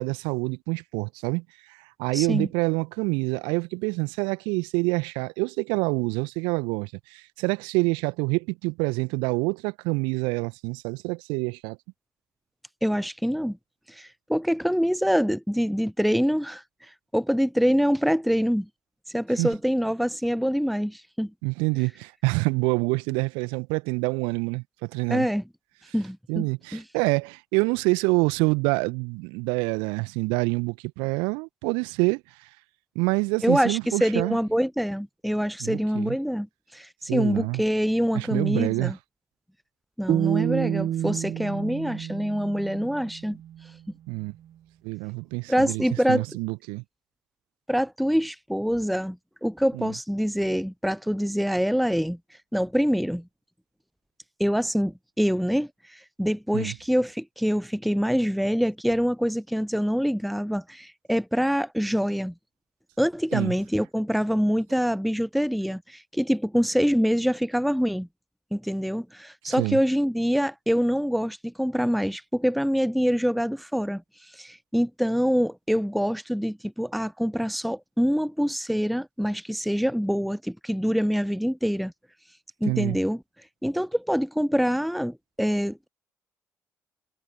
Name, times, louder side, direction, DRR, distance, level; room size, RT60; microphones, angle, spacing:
voice 1, 0.0-1.4 1.7-11.8 19.4-19.5 21.4-25.3 26.3-32.2 33.0-34.4 35.6-36.2 37.1-37.6 38.1-38.9 44.1-44.3 44.8-45.8 46.1-46.8 49.7-49.9 56.5-56.8 63.3-63.5 69.4-69.8 82.6-83.0, right 30 dB, 65° right, 1.6 m, -26 dB
voice 2, 2.1-2.5 12.8-13.6 13.9-18.7 19.1-21.3 25.1-25.4 25.9-26.5 26.7-26.8 33.4-36.5 36.7-39.0 40.0-43.4 45.5-46.2 47.7-52.2 52.5-53.2 54.4-62.3 63.0-68.1 68.5-74.0 74.3-81.9 82.6-83.2 83.6-85.9, equal, ahead, 0.8 m, -25 dB
sound 1, 40.1-43.2, right 11 dB, 50° right, 1.9 m, -28 dB
figure-of-eight pair, 45°, 9 cm